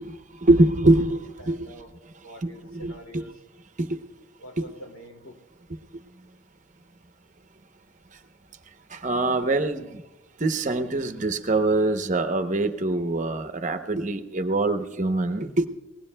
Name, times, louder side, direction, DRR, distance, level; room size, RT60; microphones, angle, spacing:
voice 1, 0.0-1.6 2.4-3.2 3.8-4.0 4.6-4.7 8.9-10.0 10.4-15.7, right 2 dB, 35° right, 7 dB, 0.7 m, -24 dB
voice 2, 1.4-1.9 2.2-3.3 4.4-5.4, right 1 dB, 90° left, 2 dB, 2.4 m, -44 dB
23.5 x 19.0 x 2.2 m, 1.0 s
head